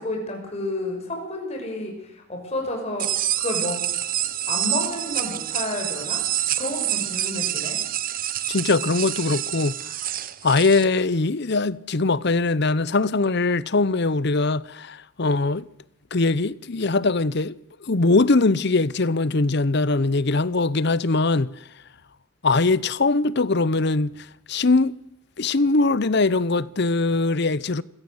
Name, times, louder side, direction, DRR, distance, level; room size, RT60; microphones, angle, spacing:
voice 1, 0.0-3.9 4.5-6.2 6.6-7.8, left 1 dB, 30° left, 6.0 m, -31 dB
sound 1, 3.0-10.8, right 12 dB, 40° right, 0.9 m, -27 dB
voice 2, 8.5-9.7 10.4-15.7 16.1-21.5 22.4-24.1 24.5-24.9 25.4-27.8, left 3 dB, 50° left, 0.8 m, -21 dB
26.5 x 17.0 x 8.0 m
head